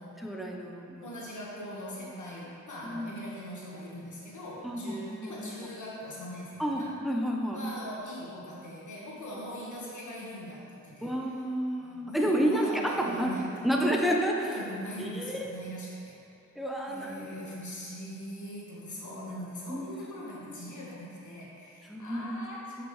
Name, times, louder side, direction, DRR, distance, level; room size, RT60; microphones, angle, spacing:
voice 1, 0.2-1.1 2.8-3.1 4.6-5.5 6.6-7.6 11.0-13.3 13.6-14.6 15.0-15.5 16.6-17.3 19.7-19.9 20.2-20.6 21.9-22.4 22.7-22.8, equal, ahead, 0 dB, 0.8 m, -30 dB
voice 2, 1.0-6.9 7.5-11.4 11.8-13.5 14.4-16.2 16.9-22.8, equal, 70° left, -5 dB, 1.5 m, -41 dB
6.7 x 5.7 x 3.2 m, 2.6 s
cardioid pair, 55°, 31 cm